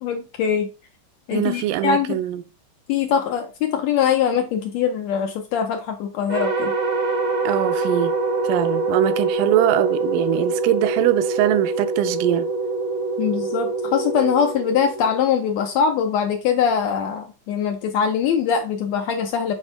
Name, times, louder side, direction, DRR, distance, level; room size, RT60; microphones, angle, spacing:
voice 1, 0.0-0.7 1.3-2.2 2.9-6.7 13.2-19.5, left 7 dB, 75° left, 1.7 m, -22 dB
voice 2, 1.3-2.4 7.5-8.1 8.4-12.5, right 13 dB, 85° right, 2.2 m, -22 dB
sound 1, 6.3-15.6, right 3 dB, 65° right, 0.7 m, -24 dB
7.1 x 4.1 x 3.4 m
omnidirectional pair, 3.7 m